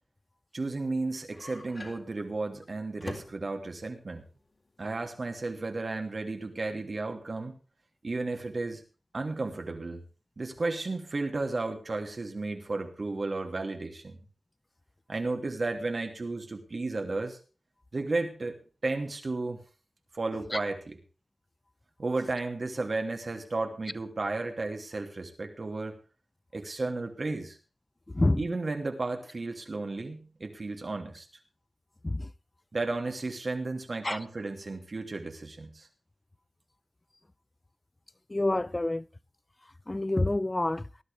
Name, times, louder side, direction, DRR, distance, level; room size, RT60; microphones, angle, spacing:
voice 1, 0.5-4.2 4.8-7.6 8.0-8.8 9.1-10.0 10.4-14.2 15.1-17.4 17.9-19.6 20.1-21.0 22.0-26.0 26.5-27.6 28.4-31.3 32.7-35.9, right 3 dB, 60° right, 2.9 m, -33 dB
sound 1, 0.8-6.4, left 2 dB, 50° left, 3.9 m, -47 dB
voice 2, 38.3-39.0 39.9-40.8, left 2 dB, 30° left, 0.8 m, -27 dB
19.5 x 12.0 x 3.5 m
wide cardioid pair, 55°, 0 cm